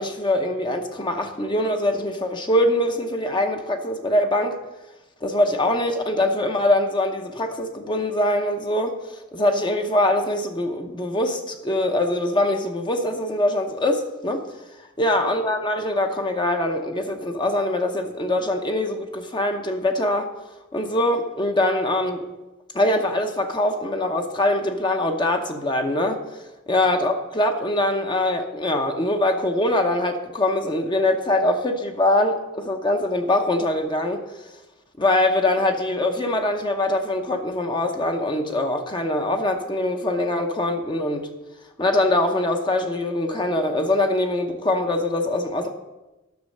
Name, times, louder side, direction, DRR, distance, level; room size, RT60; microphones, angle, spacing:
voice 1, 0.0-4.6 5.2-14.4 15.0-20.3 20.7-22.2 22.7-26.2 26.7-34.2 35.0-41.3 41.8-45.7, left 1 dB, 20° left, 5 dB, 0.7 m, -23 dB
9.5 x 6.2 x 6.5 m, 1.1 s
head